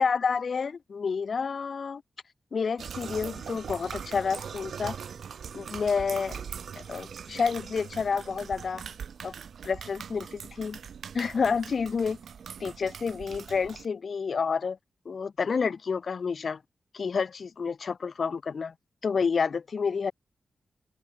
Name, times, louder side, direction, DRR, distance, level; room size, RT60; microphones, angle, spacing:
voice 1, 0.0-2.0 2.5-5.0 5.5-6.4 6.7-8.8 9.2-9.3 9.6-10.8 11.1-12.2 12.6-14.8 15.1-16.6 16.9-18.7 19.0-20.1, left 5 dB, 60° left, 0.6 m, -29 dB
sound 1, 2.8-13.9, right 7 dB, 85° right, 0.4 m, -41 dB
sound 2, 3.0-8.9, left 1 dB, 5° left, 4.3 m, -61 dB
open air
wide cardioid pair, 105°, 0 cm